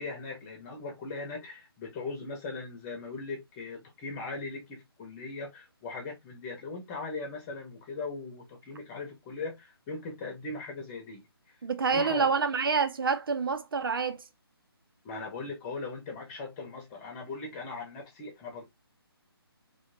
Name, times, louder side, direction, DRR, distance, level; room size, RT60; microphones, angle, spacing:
voice 1, 0.0-11.3 11.9-12.3 15.0-18.6, left 3 dB, 20° left, 1.1 m, -39 dB
voice 2, 11.6-14.2, right 5 dB, 60° right, 0.6 m, -27 dB
3.1 x 3.0 x 2.7 m
figure-of-eight pair, 150°, 13 cm